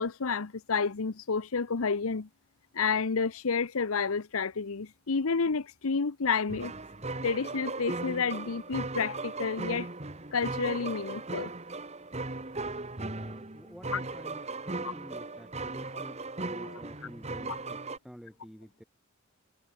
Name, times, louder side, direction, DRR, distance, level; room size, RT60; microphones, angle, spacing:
voice 1, 0.0-2.3 2.7-6.7 7.2-9.9 10.3-11.5 13.9-14.0 16.6-16.7, left 5 dB, 80° left, 0.8 m, -30 dB
sound 1, 6.5-18.0, right 3 dB, 30° right, 1.8 m, -37 dB
voice 2, 13.1-18.8, equal, ahead, 3.4 m, -49 dB
head